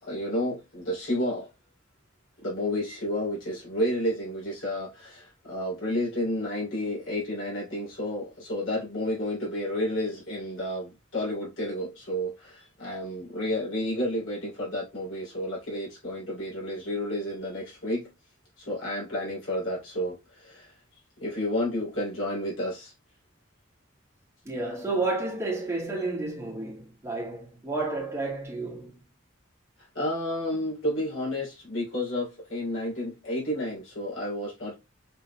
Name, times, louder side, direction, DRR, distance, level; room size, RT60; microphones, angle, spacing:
voice 1, 0.0-1.5 2.4-18.1 18.6-20.7 21.2-22.9 29.9-34.7, left 1 dB, 75° left, 3.1 m, -31 dB
voice 2, 24.5-29.0, right 3 dB, 15° right, 1.9 m, -31 dB
5.6 x 4.0 x 2.3 m
head